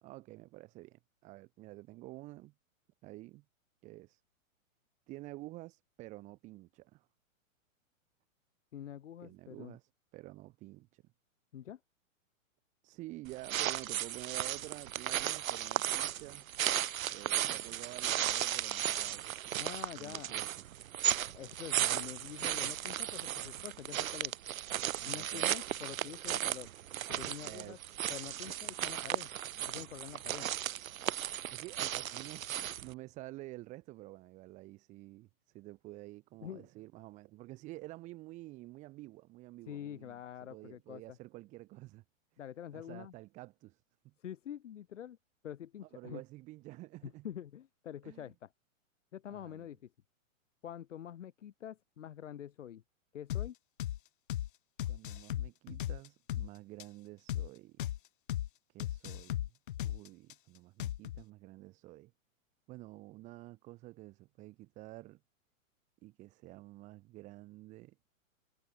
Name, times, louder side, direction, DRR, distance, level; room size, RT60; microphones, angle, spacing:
voice 1, 0.0-2.5 3.0-3.4 3.8-4.2 5.1-7.1 9.2-11.0 12.8-16.5 17.1-19.4 19.9-20.5 25.0-25.5 27.4-27.9 31.5-35.3 35.5-42.0 42.7-44.1 45.8-47.3 48.0-48.3 49.3-49.7 54.9-57.8 58.7-59.5 59.8-62.1 62.7-65.2 66.0-68.0, right 19 dB, 15° right, 2.7 m, -50 dB
voice 2, 8.7-9.8 11.5-11.8 19.6-20.4 21.3-24.4 25.1-26.7 27.1-27.8 28.1-29.3 29.7-30.5 36.4-36.7 39.7-41.2 42.4-43.1 44.2-45.2 45.4-46.2 47.0-48.5 49.1-49.9 50.6-52.8 53.1-53.5, left 10 dB, 65° left, 2.7 m, -46 dB
sound 1, 13.3-32.9, right 11 dB, 80° right, 1.0 m, -35 dB
sound 2, 53.3-53.5 53.8-54.0 54.3-54.5 54.8-56.5 56.8-56.9 57.3-57.5 57.8-58.0 58.3-58.5 58.8-60.3 60.8-61.2, left 12 dB, 40° left, 1.1 m, -36 dB
hypercardioid pair, 175°, 41 cm